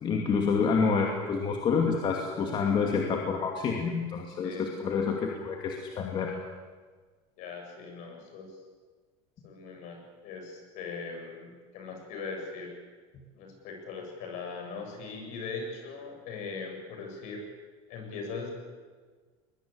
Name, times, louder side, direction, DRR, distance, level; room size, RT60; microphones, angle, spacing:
voice 1, 0.0-6.4, left 5 dB, 35° left, 1 dB, 2.6 m, -28 dB
voice 2, 4.3-4.6 7.4-8.6 9.4-12.7 13.3-17.4 17.9-18.5, left 4 dB, 55° left, 3 dB, 7.8 m, -40 dB
22.0 x 21.5 x 8.7 m, 1.5 s
cardioid pair, 150°, 15 cm